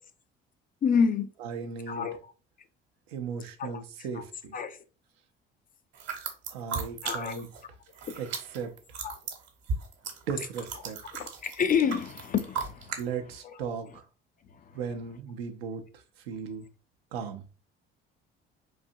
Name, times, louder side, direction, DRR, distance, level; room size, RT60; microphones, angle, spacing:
voice 1, 0.8-1.3 1.9-2.3 3.6-3.8 4.1-4.2 4.5-4.8 7.0-7.4 8.1-8.2 9.0-9.1 11.1-13.0 13.4-13.5 14.5-14.7, left 6 dB, 30° left, 0.4 m, -28 dB
voice 2, 1.4-2.1 3.1-4.5 6.5-7.5 8.2-8.3 8.5-8.7 10.3-11.0 13.0-14.1 14.7-16.7 17.1-17.5, right 6 dB, 80° right, 0.6 m, -36 dB
sound 1, 5.9-7.6 7.9-13.0, right 5 dB, 60° right, 1.1 m, -36 dB
4.0 x 2.7 x 2.5 m
hypercardioid pair, 55°, 30 cm